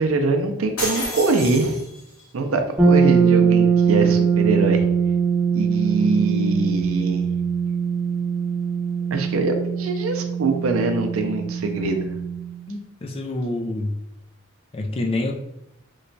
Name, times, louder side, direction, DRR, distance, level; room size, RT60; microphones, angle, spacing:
voice 1, 0.0-1.8 2.3-4.9 5.5-7.3 9.1-12.2, right 3 dB, 90° right, 5 dB, 0.5 m, -23 dB
sound 1, 0.8-2.2, left 1 dB, 80° left, 1.3 m, -30 dB
sound 2, 2.8-12.6, right 6 dB, 10° right, 0.8 m, -21 dB
voice 2, 12.7-13.9 14.7-15.3, left 2 dB, 30° left, 2 dB, 0.3 m, -27 dB
3.1 x 2.2 x 3.9 m, 0.82 s
head